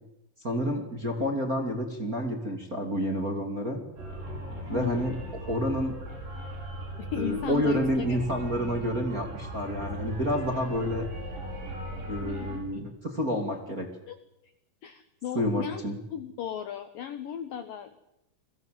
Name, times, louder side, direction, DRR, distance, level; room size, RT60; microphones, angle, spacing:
voice 1, 0.4-3.8 4.7-5.1 5.5-5.9 7.2-11.1 12.1-13.9 15.3-16.0, equal, 25° right, 4 dB, 2.0 m, -29 dB
sound 1, 4.0-12.6, equal, 45° right, 7.8 m, -38 dB
voice 2, 4.7-5.0 7.0-7.8 8.1-8.2 12.3-12.5 14.1-14.2 14.8-15.8 16.1-18.0, left 10 dB, 80° left, 11 dB, 2.0 m, -36 dB
29.0 x 22.0 x 7.7 m, 0.86 s
omnidirectional pair, 5.7 m